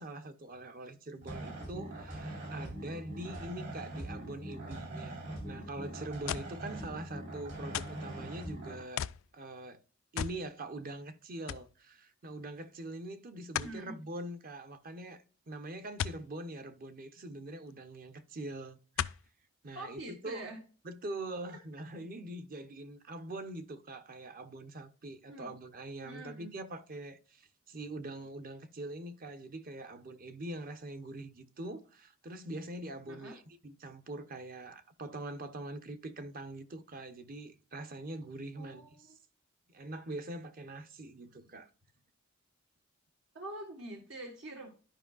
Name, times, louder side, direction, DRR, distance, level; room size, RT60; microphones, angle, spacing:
voice 1, 0.0-9.0 9.3-9.8 10.1-19.2 19.6-20.4 20.8-38.9 39.7-41.7, right 2 dB, 45° right, 0.9 m, -43 dB
sound 1, 1.2-8.8, right 1 dB, 65° right, 3.9 m, -42 dB
sound 2, 6.3-6.6 7.7-8.1 9.0-9.3 10.2-10.4 10.8-10.9 11.5-11.7 13.5-13.8 16.0-16.2 17.7-17.8 19.0-19.3 20.0-20.1, left 9 dB, 80° left, 0.4 m, -36 dB
voice 2, 13.5-13.9 19.7-20.6 25.3-25.5 26.0-26.5 33.1-33.4 38.6-39.2 43.3-44.7, right 1 dB, 80° right, 1.6 m, -45 dB
12.0 x 5.3 x 2.4 m
head